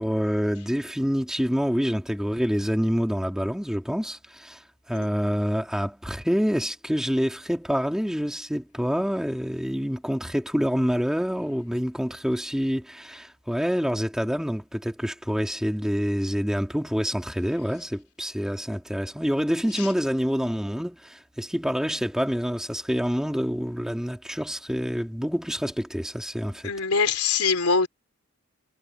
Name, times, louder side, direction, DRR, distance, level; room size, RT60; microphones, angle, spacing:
voice 1, 0.0-4.6 4.9-26.7, equal, 5° right, 3.1 m, -27 dB
voice 2, 26.6-27.9, left 5 dB, 85° left, 3.6 m, -23 dB
head